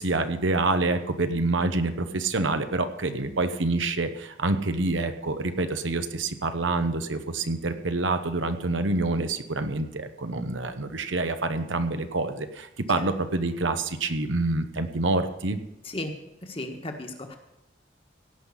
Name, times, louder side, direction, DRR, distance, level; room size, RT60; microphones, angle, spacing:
voice 1, 0.0-15.6, right 2 dB, 90° right, 8 dB, 1.1 m, -27 dB
voice 2, 16.4-17.4, left 1 dB, 30° left, 4 dB, 1.5 m, -35 dB
17.0 x 5.7 x 8.5 m, 0.89 s
head